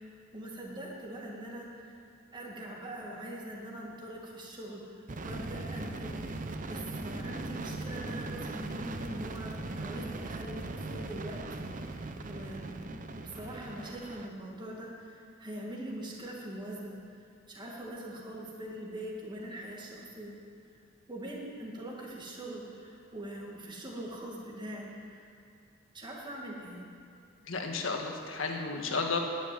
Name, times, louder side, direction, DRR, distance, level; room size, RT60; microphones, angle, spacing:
voice 1, 0.3-1.9 2.3-6.2 6.7-17.0 17.5-20.4 21.1-25.2 25.9-26.9, right 1 dB, 25° right, -3 dB, 1.9 m, -42 dB
sound 1, 5.1-14.3, right 2 dB, 40° right, 0.7 m, -39 dB
voice 2, 27.5-29.2, left 4 dB, 80° left, 3 dB, 1.6 m, -32 dB
10.5 x 9.3 x 9.1 m, 2.6 s
head